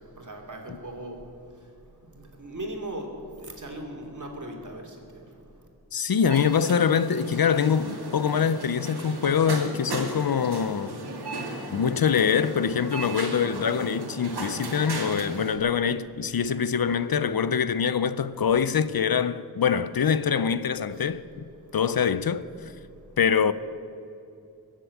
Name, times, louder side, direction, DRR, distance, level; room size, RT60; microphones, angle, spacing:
voice 1, 0.2-1.1 2.4-3.1 3.4-4.8 16.9-17.0 21.9-22.0, right 1 dB, 50° right, 2.8 m, -37 dB
voice 2, 5.9-11.0 11.7-21.5 21.7-22.4 23.2-23.5, left 7 dB, 70° left, 0.6 m, -24 dB
sound 1, 6.3-15.6, right 2 dB, 80° right, 2.2 m, -36 dB
21.5 x 7.5 x 8.3 m
wide cardioid pair, 60°, 38 cm